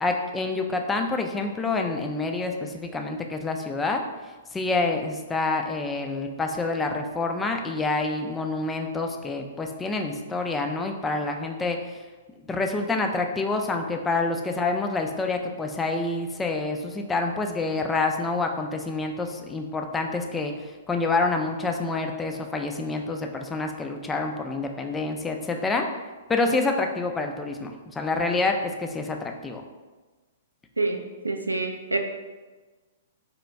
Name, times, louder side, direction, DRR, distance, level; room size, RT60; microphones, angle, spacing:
voice 1, 0.0-4.0 4.5-11.8 12.5-25.8 26.3-29.6, left 3 dB, 10° left, 3 dB, 0.3 m, -27 dB
voice 2, 30.8-32.0, right 3 dB, 85° right, 5 dB, 0.4 m, -27 dB
4.0 x 2.2 x 3.3 m, 1.3 s
figure-of-eight pair, 115°, 0 cm